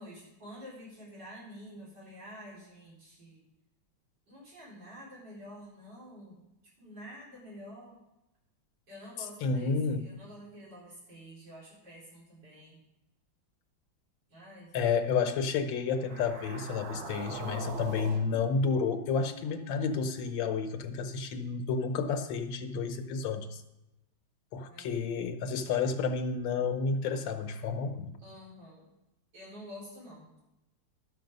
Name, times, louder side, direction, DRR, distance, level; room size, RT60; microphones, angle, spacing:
voice 1, 0.0-3.4 4.3-6.4 6.8-8.0 8.9-12.8 14.3-14.8 24.7-25.0 28.2-28.9 29.3-30.4, equal, 55° right, -7 dB, 4.8 m, -49 dB
voice 2, 9.4-10.1 14.7-23.6 24.5-28.2, left 5 dB, 70° left, 7 dB, 1.6 m, -31 dB
sound 1, 15.9-20.3, right 3 dB, 80° right, 2.1 m, -44 dB
12.0 x 6.8 x 5.3 m, 0.94 s
omnidirectional pair, 2.2 m